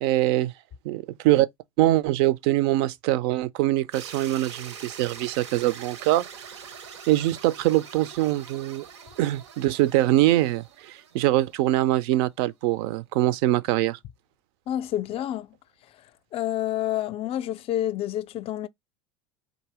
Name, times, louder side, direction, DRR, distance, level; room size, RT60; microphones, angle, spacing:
voice 1, 0.0-0.5 0.8-1.5 1.8-6.2 7.1-8.9 9.2-14.0, right 16 dB, 60° right, 0.5 m, -23 dB
sound 1, 3.9-11.9, right 7 dB, 80° right, 1.0 m, -44 dB
voice 2, 14.7-15.5 16.3-18.7, left 12 dB, 40° left, 0.5 m, -28 dB
4.0 x 2.6 x 4.7 m
hypercardioid pair, 80°, 15 cm